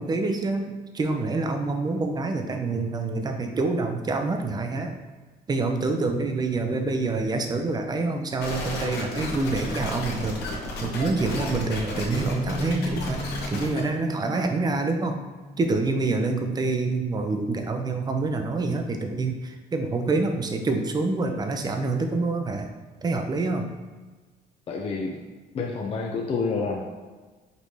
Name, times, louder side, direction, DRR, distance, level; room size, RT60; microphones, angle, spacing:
voice 1, 0.0-4.9 5.5-13.2 13.5-15.2 15.6-22.7 23.0-23.7, right 3 dB, 25° right, 5 dB, 0.5 m, -26 dB
sound 1, 8.4-13.8, left 2 dB, 75° left, 1.1 m, -32 dB
Bass guitar, 12.1-18.4, equal, 65° right, 1.3 m, -37 dB
voice 2, 24.7-25.3 25.5-26.8, left 4 dB, 35° left, 0 dB, 0.5 m, -28 dB
5.2 x 2.7 x 3.2 m, 1.3 s
cardioid pair, 110°, 17 cm